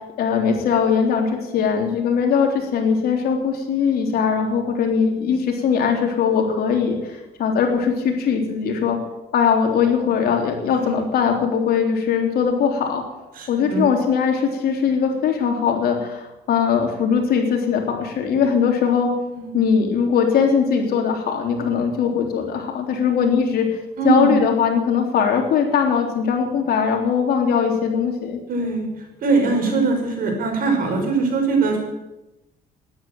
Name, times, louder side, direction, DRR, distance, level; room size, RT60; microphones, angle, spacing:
voice 1, 0.2-9.0 9.3-13.0 13.5-19.1 19.5-23.7 24.0-28.4, left 6 dB, 65° left, 2 dB, 3.6 m, -20 dB
voice 2, 10.7-11.0 13.3-13.9 19.3-19.6 24.0-24.4 28.5-28.9 29.2-31.8, right 4 dB, 55° right, 2 dB, 5.9 m, -21 dB
13.0 x 11.5 x 9.3 m, 0.98 s
cardioid pair, 110°, 17 cm